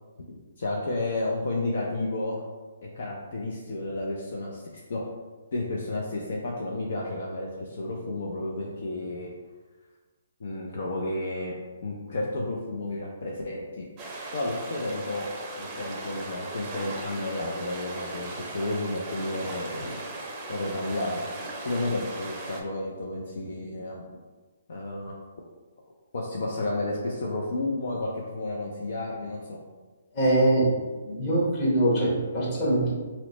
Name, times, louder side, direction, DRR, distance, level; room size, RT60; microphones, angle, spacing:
voice 1, 0.3-2.4 2.9-4.6 4.9-5.1 5.5-9.3 10.4-11.5 11.8-13.9 14.3-15.3 15.6-20.0 20.5-21.3 21.6-24.0 24.7-25.4 26.1-29.6, left 2 dB, 65° left, -2 dB, 0.5 m, -32 dB
sound 1, 14.0-22.6, right 2 dB, 25° right, 0.6 m, -38 dB
voice 2, 30.1-30.7 31.0-32.9, right 1 dB, 35° left, -6 dB, 1.2 m, -23 dB
2.9 x 2.1 x 4.0 m, 1.3 s
hypercardioid pair, 140°, 0 cm